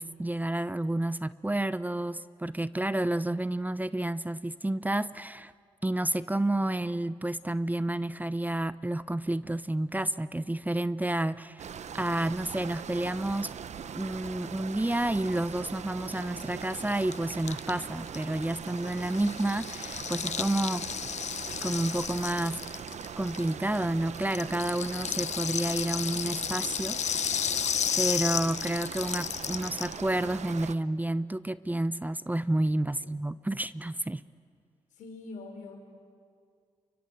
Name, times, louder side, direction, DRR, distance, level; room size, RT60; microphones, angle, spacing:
voice 1, 0.0-5.5 5.8-11.7 11.9-13.5 14.0-20.8 21.6-22.6 23.2-27.0 27.3-27.5 28.0-34.2, right 1 dB, 15° right, 15 dB, 0.8 m, -30 dB
sound 1, 11.6-30.7, right 7 dB, 65° right, 1.0 m, -41 dB
Rattle (instrument), 16.1-16.2 16.4-16.5 16.7-23.8 24.1-30.0, left 8 dB, 60° left, 0.7 m, -33 dB
voice 2, 34.9-35.8, left 3 dB, 80° left, 2 dB, 5.5 m, -45 dB
29.0 x 24.0 x 7.9 m, 2.2 s
supercardioid pair, 45°, 13 cm